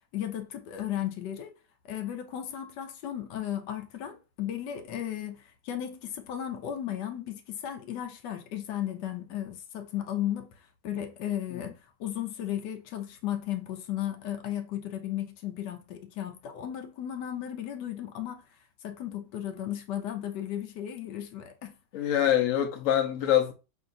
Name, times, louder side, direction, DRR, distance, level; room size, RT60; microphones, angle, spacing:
voice 1, 0.1-1.5 1.8-18.5 18.8-21.7 22.0-22.1, left 11 dB, 80° left, 1.2 m, -35 dB
voice 2, 21.9-23.5, left 11 dB, 60° left, 0.9 m, -25 dB
5.3 x 2.7 x 2.5 m
omnidirectional pair, 1.9 m